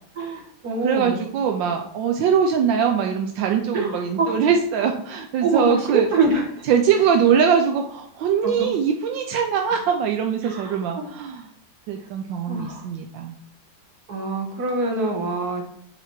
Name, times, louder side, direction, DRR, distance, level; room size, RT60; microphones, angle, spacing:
voice 1, 0.2-1.2 3.7-4.4 4.8-4.9 5.4-6.7 8.4-8.7 10.4-11.1 12.5-12.9 14.1-15.6, right 3 dB, 55° right, 1 dB, 2.0 m, -25 dB
voice 2, 0.8-6.1 6.7-11.4 11.9-13.3, right 7 dB, 80° right, 4 dB, 1.3 m, -22 dB
7.9 x 4.2 x 4.7 m, 0.65 s
omnidirectional pair, 2.1 m